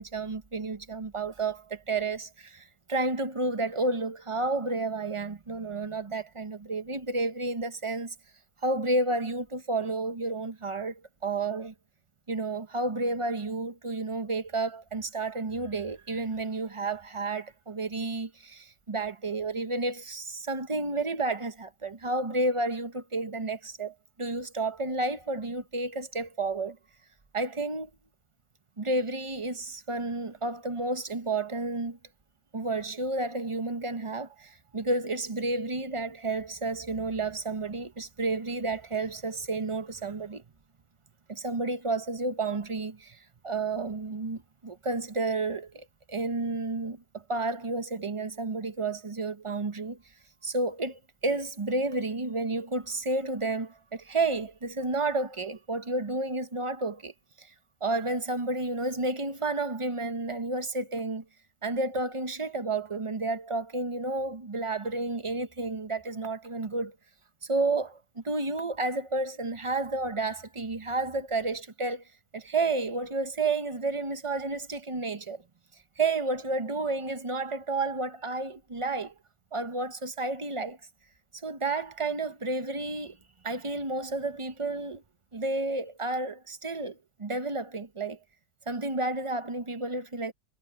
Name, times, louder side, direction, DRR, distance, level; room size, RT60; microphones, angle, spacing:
voice 1, 0.0-8.1 8.6-11.7 12.3-26.8 27.3-27.9 28.8-32.0 32.5-40.4 41.3-43.2 43.4-50.0 50.4-57.1 57.4-57.5 57.8-61.2 61.6-66.9 67.4-72.0 72.3-75.4 76.0-79.1 79.5-80.8 81.4-83.2 83.4-85.0 85.3-88.2 88.7-90.3, right 2 dB, 25° right, 0.6 m, -31 dB
omnidirectional pair, 1.9 m